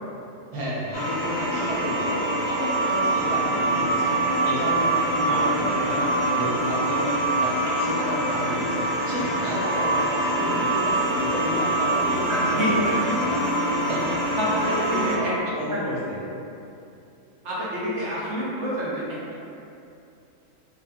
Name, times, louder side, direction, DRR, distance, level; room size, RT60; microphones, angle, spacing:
voice 1, 0.5-4.1 4.4-13.4 13.9-14.2 14.7-16.3, equal, 50° right, -8 dB, 0.4 m, -31 dB
sound 1, 0.9-15.2, right 1 dB, 85° left, 1.0 m, -24 dB
voice 2, 5.3-6.0 12.3-13.2 14.4-15.3 15.7-15.8 17.4-19.4, equal, 65° right, -7 dB, 0.8 m, -28 dB
2.6 x 2.5 x 2.2 m, 2.6 s
omnidirectional pair, 1.4 m